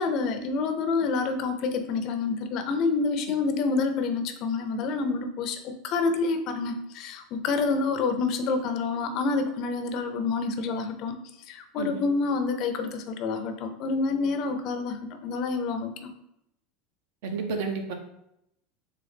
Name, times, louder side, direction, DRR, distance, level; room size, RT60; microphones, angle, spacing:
voice 1, 0.0-11.1 11.5-16.1, left 4 dB, 45° left, 7 dB, 0.5 m, -28 dB
voice 2, 17.2-17.9, right 4 dB, 70° right, 4 dB, 0.7 m, -31 dB
3.8 x 3.2 x 3.4 m, 0.79 s
supercardioid pair, 155°, 0 cm